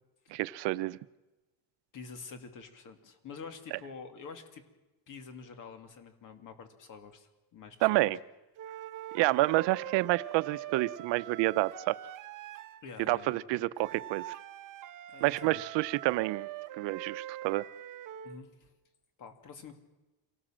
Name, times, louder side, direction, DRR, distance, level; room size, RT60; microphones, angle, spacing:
voice 1, 0.3-1.0 7.8-8.2 9.1-12.0 13.1-14.3 15.2-16.5 16.8-17.7, right 19 dB, 75° right, 15 dB, 0.8 m, -29 dB
voice 2, 1.9-4.6 5.1-8.1 12.8-13.4 15.1-15.6 18.2-18.7 19.2-19.8, left 5 dB, 45° left, 7 dB, 2.6 m, -47 dB
sound 1, 8.6-12.9 13.8-18.4, right 13 dB, 45° right, 1.0 m, -43 dB
26.5 x 18.5 x 7.5 m, 1.1 s
cardioid pair, 165°, 44 cm